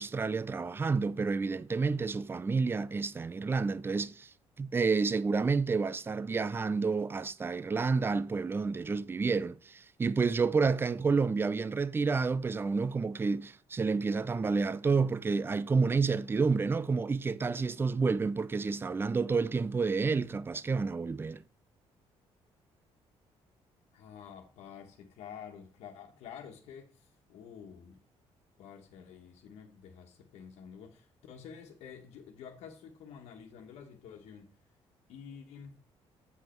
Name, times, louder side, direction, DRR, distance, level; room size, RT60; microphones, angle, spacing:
voice 1, 0.0-4.3 4.6-21.4, right 4 dB, 20° right, 0.4 m, -29 dB
voice 2, 23.9-28.0 28.6-34.5 35.1-35.8, left 7 dB, 90° left, 1.4 m, -49 dB
7.8 x 5.3 x 4.5 m
cardioid pair, 110°, 11 cm